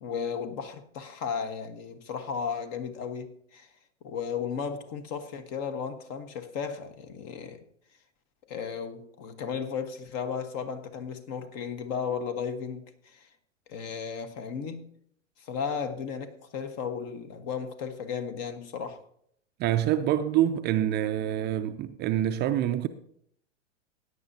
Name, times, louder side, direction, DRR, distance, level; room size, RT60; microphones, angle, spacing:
voice 1, 0.0-3.7 4.0-7.6 8.5-13.3 13.7-14.9 15.4-19.0, left 6 dB, 45° left, 1.4 m, -35 dB
voice 2, 19.6-22.9, right 11 dB, 30° right, 0.5 m, -26 dB
16.5 x 9.4 x 2.8 m
hypercardioid pair, 105°, 36 cm